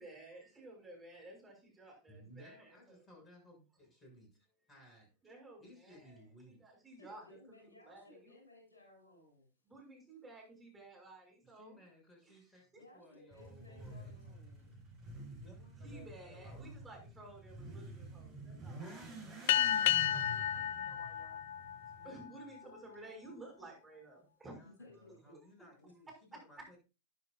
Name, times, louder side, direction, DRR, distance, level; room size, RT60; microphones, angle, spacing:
voice 1, 0.0-3.1 5.2-8.4 9.6-11.8 12.2-12.4 15.8-18.9 22.0-24.6, right 2 dB, 15° right, -2 dB, 6.4 m, -54 dB
voice 2, 2.1-5.3 5.6-6.7 11.4-12.7 12.9-14.2 15.4-17.0 18.8-21.4 22.0-22.8 24.5-26.8, left 1 dB, 20° left, 1 dB, 6.7 m, -60 dB
voice 3, 7.0-9.5 12.8-15.0 20.1-20.4 24.8-25.3 25.8-25.9, left 2 dB, 75° left, 1 dB, 6.1 m, -60 dB
Motorcycle / Accelerating revving vroom, 13.3-22.2, right 2 dB, 35° right, 5.0 m, -49 dB
sound 1, 19.5-22.4, left 11 dB, 55° left, 0.4 m, -32 dB
12.5 x 11.0 x 2.5 m, 0.30 s
figure-of-eight pair, 90°, 0 cm